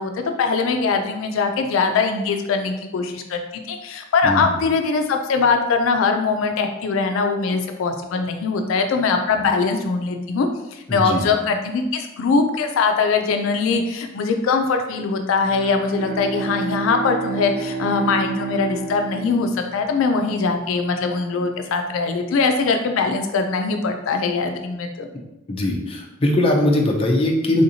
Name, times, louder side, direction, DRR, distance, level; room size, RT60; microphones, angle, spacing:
voice 1, 0.0-25.1, left 4 dB, 85° left, 5 dB, 0.3 m, -22 dB
voice 2, 10.9-11.2 25.5-27.6, left 1 dB, 30° left, 0 dB, 0.5 m, -20 dB
Bowed string instrument, 15.3-20.2, right 4 dB, 50° right, 0.5 m, -31 dB
3.5 x 2.7 x 2.7 m, 0.97 s
head